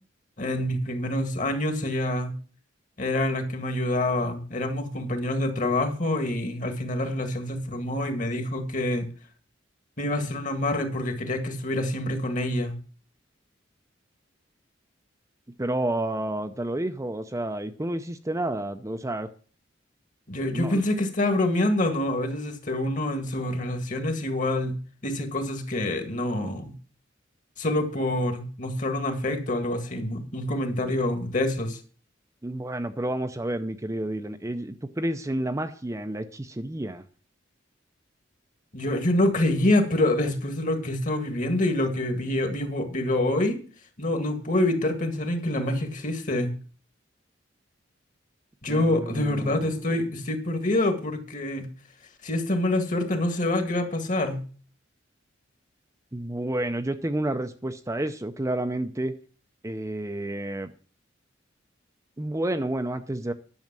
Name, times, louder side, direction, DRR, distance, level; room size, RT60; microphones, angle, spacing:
voice 1, 0.4-2.3 3.0-9.1 10.0-12.7 20.3-24.8 25.0-26.7 27.6-31.8 38.7-43.6 44.0-46.6 48.6-51.7 52.2-54.4, left 1 dB, 40° left, 7 dB, 1.9 m, -26 dB
voice 2, 15.6-19.3 20.5-20.8 32.4-37.0 48.7-49.9 56.1-59.2 59.6-60.7 62.2-63.3, right 1 dB, 15° right, 8 dB, 0.5 m, -30 dB
11.0 x 6.4 x 7.4 m, 0.40 s
head